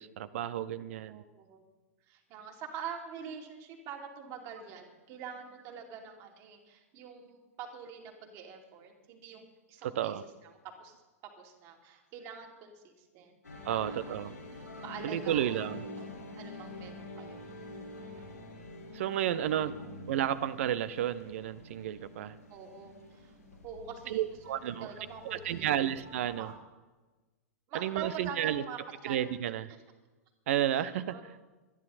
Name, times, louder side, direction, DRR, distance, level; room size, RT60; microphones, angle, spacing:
voice 1, 0.0-1.2 9.8-10.2 13.6-14.3 15.0-15.9 18.9-19.8 20.1-22.3 24.1-24.9 25.3-26.5 27.7-28.6 29.0-29.7 30.5-31.2, right 11 dB, 55° right, 15 dB, 0.8 m, -32 dB
voice 2, 1.0-1.6 2.1-10.1 10.4-10.9 11.4-13.4 13.7-14.4 14.8-15.6 16.0-16.1 16.4-17.5 18.1-18.2 22.5-23.4 23.6-24.2 24.6-25.9 26.4-26.6 27.7-29.2 30.7-31.2, right 6 dB, 40° right, 3 dB, 3.0 m, -45 dB
sound 1, 13.4-26.5, left 2 dB, 85° left, 4.5 m, -47 dB
25.5 x 10.5 x 4.3 m, 1.2 s
figure-of-eight pair, 100°, 8 cm